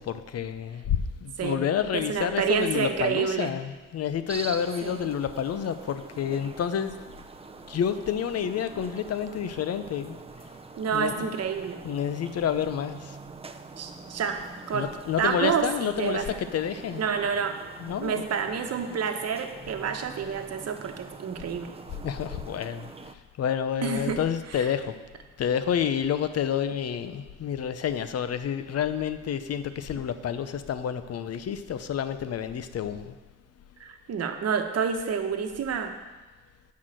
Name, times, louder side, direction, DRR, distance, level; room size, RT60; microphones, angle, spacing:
voice 1, 0.0-6.9 7.7-10.2 10.9-11.3 11.8-13.2 14.7-17.0 17.8-18.2 22.0-23.1 23.4-24.9 25.4-33.1, left 8 dB, 55° left, 11 dB, 0.8 m, -29 dB
voice 2, 1.9-3.5 4.8-5.0 10.8-11.8 13.8-14.4 14.7-14.9 15.2-16.4 16.9-17.6 18.0-21.7 23.8-24.2 24.5-24.7 33.8-35.9, right 6 dB, 55° right, 5 dB, 1.2 m, -28 dB
sound 1, 4.3-23.1, right 4 dB, 20° right, 0.6 m, -45 dB
8.5 x 5.8 x 7.7 m, 1.2 s
cardioid pair, 90°, 30 cm